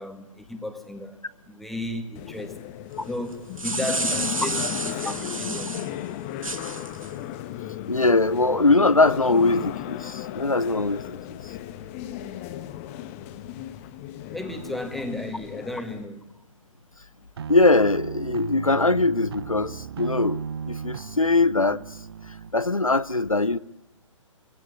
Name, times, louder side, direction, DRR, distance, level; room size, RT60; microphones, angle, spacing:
voice 1, 0.0-2.6 3.0-5.8 14.3-16.3, left 1 dB, ahead, 1.8 m, -34 dB
sound 1, 2.1-16.0, left 12 dB, 25° left, 1.2 m, -36 dB
sound 2, 3.3-5.9 6.4-7.1, right 3 dB, 85° right, 1.0 m, -30 dB
voice 2, 7.9-11.2 17.5-21.8 22.5-23.6, left 3 dB, 90° left, 0.9 m, -21 dB
sound 3, 17.4-22.5, right 7 dB, 50° right, 0.9 m, -35 dB
23.0 x 16.5 x 9.8 m
figure-of-eight pair, 130°, 17 cm